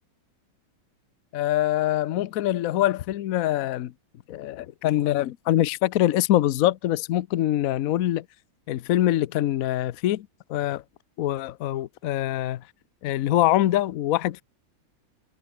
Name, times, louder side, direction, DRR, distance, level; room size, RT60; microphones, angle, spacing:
voice 1, 1.3-3.9 4.3-8.3 8.7-10.8 11.2-12.6 13.0-14.4, left 13 dB, 90° left, 0.7 m, -24 dB
omnidirectional pair, 2.4 m